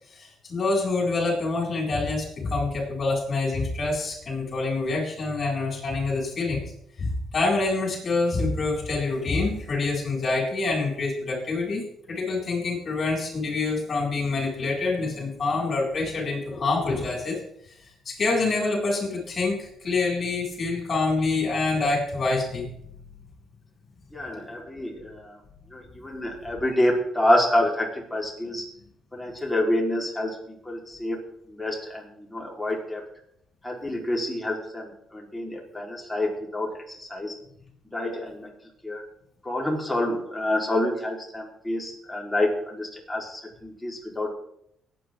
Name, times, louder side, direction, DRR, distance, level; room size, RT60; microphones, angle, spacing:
voice 1, 0.1-6.6 7.0-11.8 12.1-17.4 18.1-22.7 26.5-26.8, left 3 dB, 45° left, -1 dB, 7.6 m, -26 dB
voice 2, 24.1-25.1 25.7-28.6 29.1-30.4 30.7-31.2 31.5-32.0 32.3-33.0 33.6-36.7 37.0-37.3 37.9-38.5 38.8-39.0 39.4-44.3, left 1 dB, 10° left, -2 dB, 4.8 m, -27 dB
23.5 x 9.6 x 4.0 m, 0.74 s
cardioid pair, 90°, 0 cm